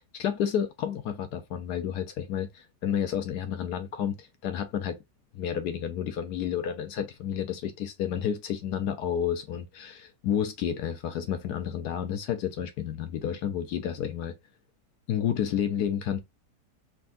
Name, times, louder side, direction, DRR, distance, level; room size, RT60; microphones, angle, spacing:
voice 1, 0.0-5.0 5.3-14.3 15.1-16.2, left 9 dB, 70° left, 1.1 m, -30 dB
4.6 x 3.7 x 2.5 m
omnidirectional pair, 1.9 m